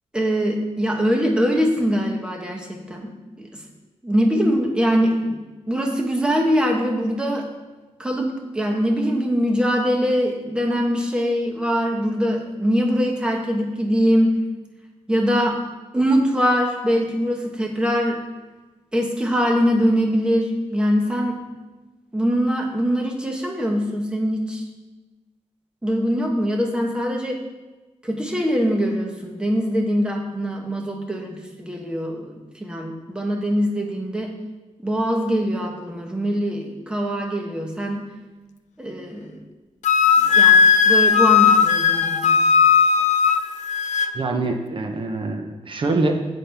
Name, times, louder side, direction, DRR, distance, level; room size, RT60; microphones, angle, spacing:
voice 1, 0.1-3.1 3.4-3.5 4.0-5.4 5.7-7.4 8.0-14.4 15.1-15.6 15.9-18.2 18.9-21.4 22.1-24.6 25.8-27.4 28.0-34.3 34.8-38.0 38.8-39.4 40.2-42.5, equal, 10° right, 1 dB, 1.1 m, -22 dB
Wind instrument woodwind instrument, 39.8-44.1, left 6 dB, 85° left, 0.5 m, -16 dB
voice 2, 44.1-46.1, right 3 dB, 45° right, 3 dB, 0.8 m, -24 dB
9.9 x 8.4 x 3.4 m, 1.2 s
wide cardioid pair, 170°, 12 cm